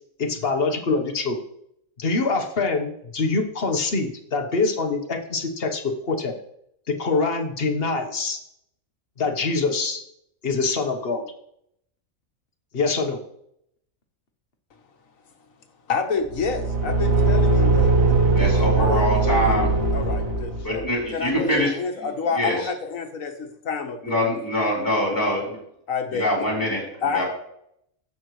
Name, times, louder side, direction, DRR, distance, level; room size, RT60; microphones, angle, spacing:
voice 1, 0.2-1.4 2.0-6.3 6.9-8.4 9.2-10.0 10.4-11.2 12.7-13.2, left 3 dB, 50° left, 5 dB, 1.4 m, -24 dB
voice 2, 15.9-19.1 19.9-20.8 21.1-24.3 25.9-26.3 27.0-27.2, left 5 dB, 80° left, 5 dB, 1.7 m, -29 dB
Car / Engine, 16.3-20.9, right 3 dB, 85° right, 1.8 m, -20 dB
voice 3, 18.3-19.7 20.6-21.7 22.0-22.7 24.0-25.4 26.1-27.2, equal, 15° left, -4 dB, 4.2 m, -24 dB
16.0 x 6.1 x 3.2 m, 0.73 s
omnidirectional pair, 1.4 m